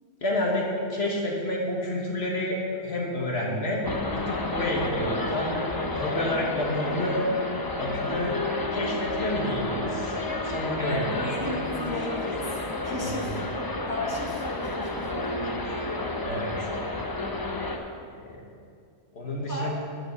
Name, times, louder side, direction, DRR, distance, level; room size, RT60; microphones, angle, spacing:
voice 1, 0.2-3.8 4.1-5.6 5.9-7.3 7.8-8.4 8.7-10.1 10.4-11.0 13.0-13.3 15.3-15.9 16.2-16.5 18.3-18.5 19.1-19.7, left 1 dB, 55° left, -2 dB, 1.6 m, -29 dB
sound 1, 3.8-17.8, left 2 dB, 25° left, 0.5 m, -31 dB
voice 2, 10.8-12.5 12.8-13.4 13.9-15.1 19.5-19.7, left 1 dB, 15° right, -4 dB, 1.4 m, -34 dB
9.7 x 8.0 x 5.5 m, 2.4 s
omnidirectional pair, 1.3 m